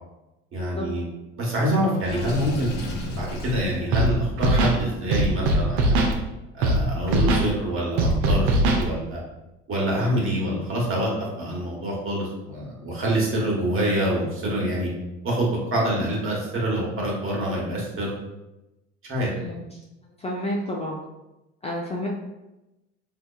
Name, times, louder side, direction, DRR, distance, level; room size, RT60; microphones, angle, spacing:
voice 1, 0.5-1.1 1.4-2.7 3.2-6.0 6.5-9.2 9.7-14.9 15.2-18.1 19.1-19.3, right 1 dB, 35° right, -3 dB, 1.3 m, -26 dB
Water / Sink (filling or washing), 2.0-3.8, left 1 dB, 65° left, 0.8 m, -32 dB
Scratching (performance technique), 3.9-4.1 4.4-4.8 5.1-6.1 6.6-6.8 7.1-7.5 8.0-8.8, right 2 dB, 75° right, 0.6 m, -20 dB
voice 2, 19.3-19.7 20.2-21.0 21.6-22.1, left 1 dB, 20° left, -2 dB, 0.4 m, -30 dB
3.4 x 2.8 x 2.3 m, 0.98 s
hypercardioid pair, 70°, 35 cm